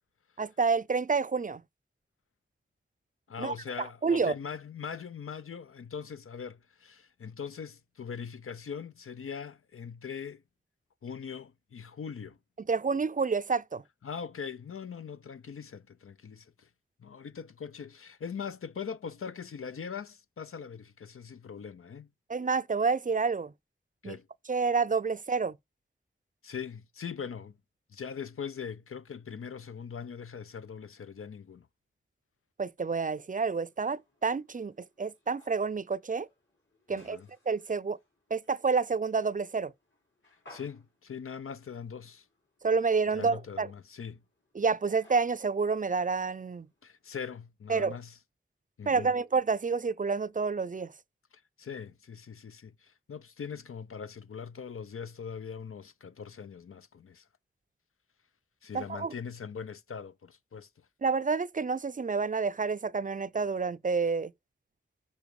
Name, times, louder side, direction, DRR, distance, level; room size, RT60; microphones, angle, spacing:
voice 1, 0.4-1.6 3.4-3.5 4.0-4.3 12.7-13.8 22.3-23.5 24.0-24.2 24.5-25.6 32.6-36.3 36.9-37.2 37.5-38.0 38.3-39.7 42.6-43.7 44.5-46.7 47.7-47.9 48.9-50.9 58.7-59.1 61.0-64.3, right 4 dB, 40° right, 0.4 m, -29 dB
voice 2, 3.3-10.4 11.0-12.4 14.0-16.7 17.0-22.1 24.0-24.3 26.4-27.5 27.9-31.7 36.9-37.3 40.5-42.3 43.1-44.2 46.8-48.2 48.8-49.1 51.3-57.3 58.6-60.9, left 6 dB, 90° left, 0.5 m, -41 dB
sound 1, 33.4-47.1, left 1 dB, 65° left, 3.7 m, -63 dB
7.1 x 4.4 x 4.7 m
wide cardioid pair, 45°, 21 cm